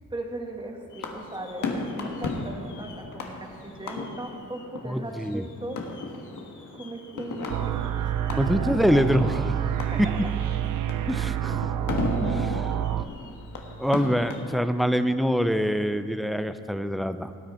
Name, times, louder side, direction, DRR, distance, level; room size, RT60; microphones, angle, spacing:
voice 1, 0.1-5.8 6.7-8.5 9.8-10.2, right 2 dB, 15° right, 2 dB, 1.8 m, -38 dB
sound 1, 0.9-14.4, left 3 dB, 75° left, 1.6 m, -36 dB
voice 2, 4.8-5.5 8.4-9.5 11.1-11.9 12.2-13.2 13.8-17.3, equal, ahead, 10 dB, 0.6 m, -25 dB
sound 2, 7.5-13.0, right 11 dB, 85° right, 0.5 m, -28 dB
18.0 x 9.0 x 4.4 m, 2.4 s
cardioid pair, 70°, 31 cm